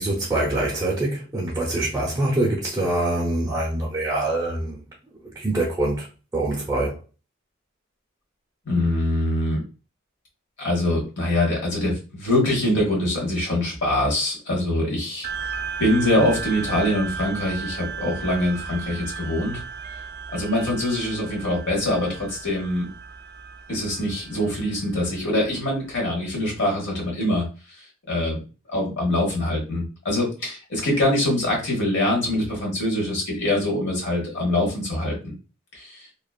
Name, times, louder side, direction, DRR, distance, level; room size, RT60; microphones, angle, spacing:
voice 1, 0.0-4.8 5.3-6.1 6.3-7.0, right 2 dB, 15° right, 0.7 m, -24 dB
voice 2, 8.6-9.6 10.6-15.3 15.8-19.6 20.3-22.9 23.7-27.4 28.1-28.4 28.7-35.3 35.7-36.0, left 1 dB, 60° left, 1.4 m, -24 dB
sound 1, 15.2-26.1, right 6 dB, 50° right, 0.3 m, -35 dB
2.9 x 2.4 x 2.3 m
head